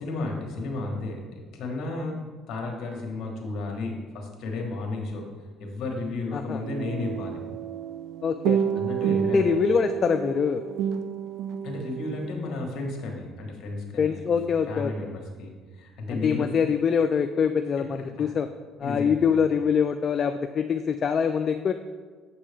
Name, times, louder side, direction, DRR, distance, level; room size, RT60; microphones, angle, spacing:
voice 1, 0.0-2.2 2.5-5.3 5.6-7.4 8.7-9.5 11.6-14.3 14.7-16.5 18.2-18.3 18.8-19.2, left 2 dB, 60° left, 1 dB, 1.4 m, -33 dB
sound 1, 6.6-12.3, right 9 dB, 70° right, 0.3 m, -29 dB
voice 2, 8.2-8.6 9.2-10.6 14.0-14.9 16.1-18.5 18.8-21.7, left 6 dB, 45° left, 7 dB, 0.3 m, -24 dB
7.3 x 5.4 x 3.4 m, 1.5 s
supercardioid pair, 90°, 0 cm